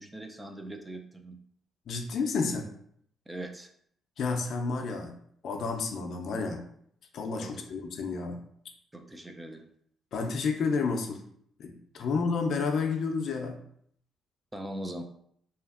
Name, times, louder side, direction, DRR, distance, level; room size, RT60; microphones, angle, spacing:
voice 1, 0.0-1.4 3.3-3.7 7.4-7.5 8.9-9.7 14.5-15.0, right 1 dB, 15° right, 4 dB, 0.4 m, -40 dB
voice 2, 1.9-2.7 4.2-5.1 5.4-6.6 7.1-8.4 10.1-11.2 11.6-13.6, left 4 dB, 65° left, 4 dB, 0.4 m, -30 dB
2.7 x 2.4 x 2.4 m, 0.66 s
cardioid pair, 90°, 0 cm